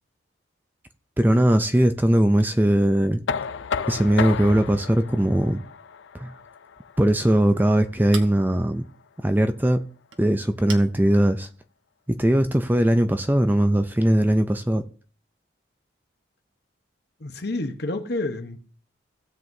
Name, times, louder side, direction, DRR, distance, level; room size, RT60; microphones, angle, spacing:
voice 1, 1.2-3.2 3.9-5.6 6.1-6.3 7.0-8.8 9.2-9.8 10.2-11.5 12.1-14.8, right 1 dB, 10° right, 0.4 m, -20 dB
Knock, 3.3-9.1, left 6 dB, 70° left, 0.4 m, -33 dB
Chink clink, 6.8-12.4, right 6 dB, 75° right, 1.1 m, -45 dB
voice 2, 17.2-18.6, left 2 dB, 55° left, 1.0 m, -29 dB
16.5 x 7.6 x 2.7 m
head